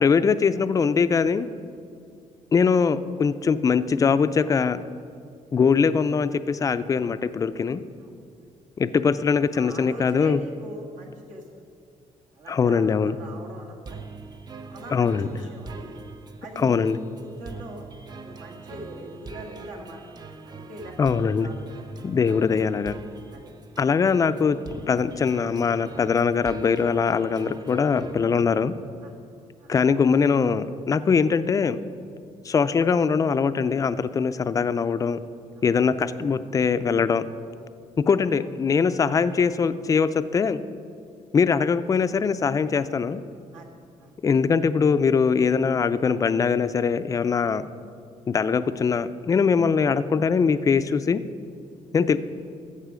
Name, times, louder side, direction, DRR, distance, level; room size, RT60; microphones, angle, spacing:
voice 1, 0.0-1.5 2.5-4.8 5.5-7.8 8.8-10.4 12.5-13.2 14.9-15.3 16.6-17.0 21.0-21.5 22.0-22.9 23.8-24.6 24.9-28.7 29.7-31.8 32.5-35.2 35.6-37.3 38.0-40.6 41.3-43.2 44.2-47.7 48.3-51.2 51.9-52.2, left 5 dB, 25° left, 13 dB, 0.4 m, -22 dB
voice 2, 9.5-11.6 12.3-14.0 14.6-16.0 16.4-16.9 17.2-17.8 18.2-20.9 21.4-21.9 23.3-23.5 29.0-29.1 29.6-29.7 35.5-35.7 38.1-38.2 43.5-43.7 44.0-44.1, right 1 dB, 75° right, 0 dB, 1.8 m, -42 dB
sound 1, 13.9-28.3, right 4 dB, 30° right, 0.6 m, -43 dB
14.0 x 7.5 x 4.9 m, 2.3 s
cardioid pair, 135°, 13 cm